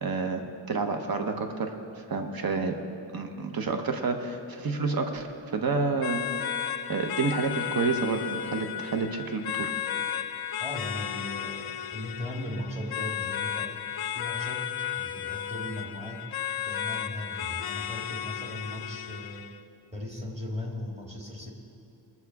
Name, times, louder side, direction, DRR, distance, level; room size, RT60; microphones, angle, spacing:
voice 1, 0.0-1.7 2.1-2.8 3.1-5.3 5.5-6.2 6.9-9.7, right 4 dB, 50° right, 5 dB, 1.0 m, -29 dB
sound 1, 6.0-19.6, left 10 dB, 55° left, 0.5 m, -34 dB
voice 2, 10.6-13.7 14.1-16.3 16.6-19.4 19.9-21.5, left 1 dB, 15° right, -1 dB, 2.0 m, -37 dB
20.5 x 7.2 x 4.8 m, 2.8 s
wide cardioid pair, 125°, 46 cm